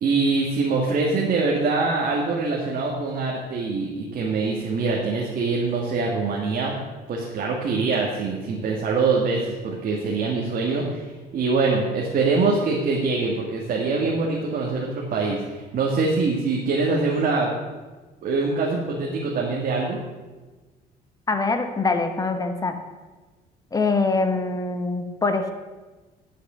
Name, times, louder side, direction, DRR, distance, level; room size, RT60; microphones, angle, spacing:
voice 1, 0.0-6.7 7.1-11.1 11.3-17.5 18.2-20.0, right 3 dB, 55° right, -2 dB, 1.8 m, -24 dB
voice 2, 21.3-22.7 23.7-25.5, left 3 dB, 20° left, 7 dB, 1.2 m, -24 dB
10.5 x 6.5 x 6.3 m, 1.2 s
cardioid pair, 110°, 17 cm